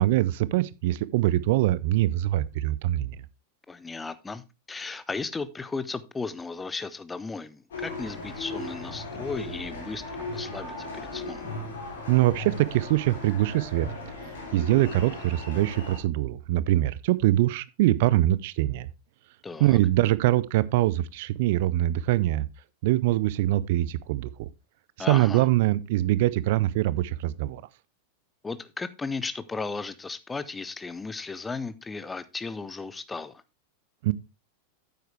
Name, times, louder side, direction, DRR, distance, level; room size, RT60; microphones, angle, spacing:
voice 1, 0.0-3.1 12.1-13.9 14.5-18.9 19.6-22.5 22.8-24.5 25.1-27.6 34.0-34.1, right 15 dB, 50° right, 0.4 m, -23 dB
voice 2, 3.7-11.4 19.4-19.8 25.0-25.4 28.4-33.3, left 4 dB, 10° left, 0.7 m, -35 dB
sound 1, 7.7-16.0, left 2 dB, 60° left, 3.1 m, -37 dB
9.2 x 7.9 x 3.3 m
figure-of-eight pair, 90°, 0 cm